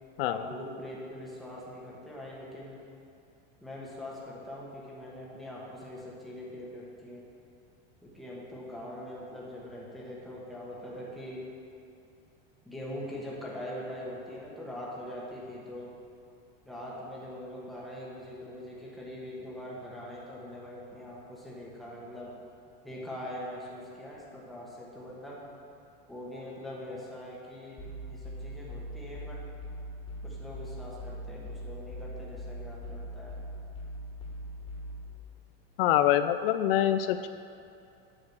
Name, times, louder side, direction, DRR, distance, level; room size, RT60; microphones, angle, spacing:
voice 1, 0.2-2.8 3.6-7.3 8.0-11.5 12.6-15.9 16.6-22.3 22.8-25.4 26.1-29.4 30.2-33.3, left 1 dB, ahead, -6 dB, 1.5 m, -42 dB
sound 1, 27.8-35.1, equal, 15° left, 1.8 m, -41 dB
voice 2, 35.8-37.3, left 12 dB, 75° left, 10 dB, 0.5 m, -25 dB
8.7 x 6.6 x 6.1 m, 2.6 s
supercardioid pair, 165°, 29 cm